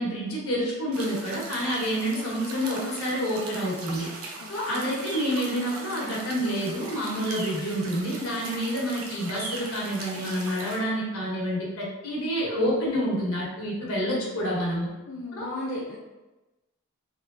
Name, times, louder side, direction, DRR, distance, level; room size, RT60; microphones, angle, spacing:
voice 1, 0.0-4.1 4.5-14.9 15.4-15.5, equal, 80° left, -4 dB, 1.3 m, -28 dB
sound 1, 0.9-10.8, right 2 dB, 85° right, 0.6 m, -39 dB
voice 2, 4.4-4.9 7.2-7.3 15.1-16.0, left 1 dB, 60° left, -5 dB, 0.5 m, -36 dB
3.6 x 3.1 x 2.5 m, 1.1 s
head